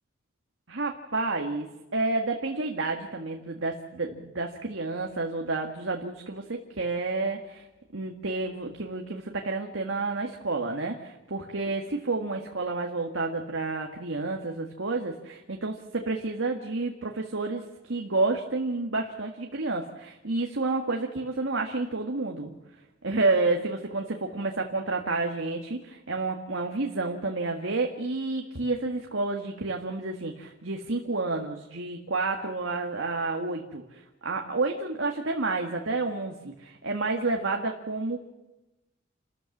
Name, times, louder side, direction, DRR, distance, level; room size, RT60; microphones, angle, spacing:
voice 1, 0.7-7.7 7.9-22.5 23.0-38.4, right 3 dB, 85° right, 2 dB, 1.8 m, -30 dB
29.0 x 14.0 x 7.3 m, 1.0 s
head